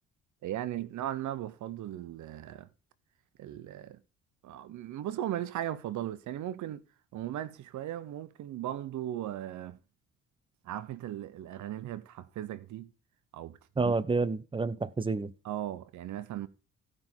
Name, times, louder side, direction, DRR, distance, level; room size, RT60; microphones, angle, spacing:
voice 1, 0.4-2.7 3.4-4.0 4.4-6.8 7.1-9.8 10.6-12.9 13.3-13.9 15.4-16.5, right 12 dB, 75° right, 0.8 m, -37 dB
voice 2, 13.8-15.3, right 3 dB, 15° right, 0.8 m, -29 dB
15.0 x 5.5 x 4.5 m
cardioid pair, 90°, 30 cm